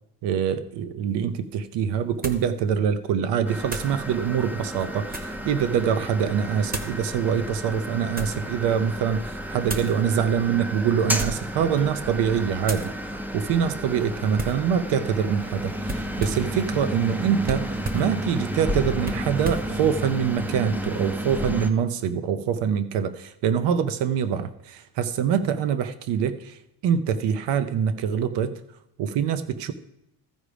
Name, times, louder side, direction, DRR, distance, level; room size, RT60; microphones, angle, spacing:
voice 1, 0.2-12.9 13.3-26.6 26.8-28.6 29.0-29.7, right 8 dB, 80° right, 11 dB, 0.8 m, -24 dB
sound 1, 1.1-1.2 2.2-2.5 3.7-4.0 4.7-5.4 6.7-7.0 7.7-8.4 9.6-10.0 11.0-11.5 11.9-12.2 12.6-12.9 14.4-14.7 15.8-16.5 17.4-18.1 19.0-19.7, right 1 dB, 20° right, 0.9 m, -34 dB
sound 2, 3.5-21.7, equal, 5° right, 0.4 m, -32 dB
14.5 x 5.0 x 5.0 m, 0.82 s
cardioid pair, 160°, 41 cm